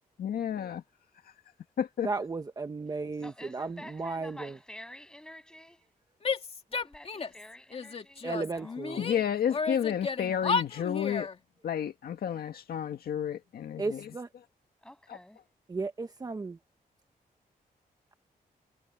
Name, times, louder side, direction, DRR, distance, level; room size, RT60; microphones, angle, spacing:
voice 1, 0.2-0.8 1.8-2.1 8.9-11.3 11.6-14.1 15.1-15.2, left 9 dB, 90° left, 1.8 m, -31 dB
voice 2, 2.0-4.6 8.2-9.1 13.8-14.3 15.7-16.6, right 3 dB, 25° right, 1.0 m, -35 dB
voice 3, 3.2-5.8 6.7-8.8 14.8-15.4, left 1 dB, 5° left, 7.3 m, -49 dB
Female speech woman speaking / Yell, 6.2-7.4 7.7-9.2 9.5-11.4, left 5 dB, 40° left, 2.4 m, -33 dB
wide cardioid pair, 145°, 15 cm